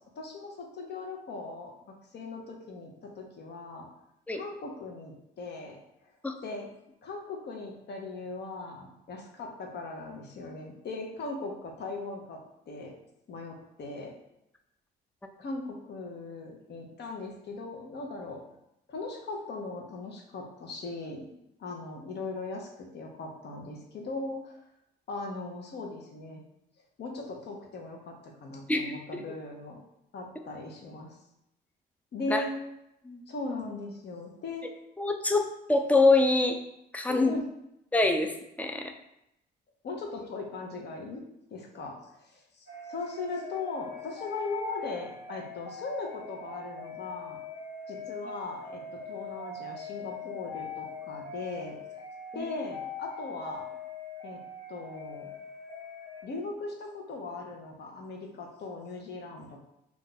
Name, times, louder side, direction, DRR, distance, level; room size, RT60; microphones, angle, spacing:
voice 1, 0.2-1.7 2.1-3.9 4.3-5.8 6.4-6.7 7.0-12.4 12.7-12.9 13.3-14.1 15.4-18.4 18.9-21.3 21.6-24.6 25.1-26.4 27.0-29.8 30.1-31.2 32.1-32.5 33.3-34.7 37.1-37.4 39.8-41.2 41.5-47.4 47.9-52.0 52.3-53.7 54.2-54.4 54.7-55.3 56.2-59.6, left 3 dB, 60° left, 1 dB, 0.7 m, -39 dB
voice 2, 28.7-29.2 32.3-32.4 33.0-33.2 35.0-36.6 36.9-37.3 37.9-38.9 52.4-52.5, left 3 dB, 5° left, 5 dB, 0.3 m, -25 dB
sound 1, 42.7-56.2, left 5 dB, 80° left, 1.0 m, -42 dB
2.5 x 2.3 x 3.9 m, 0.83 s
cardioid pair, 90°, 20 cm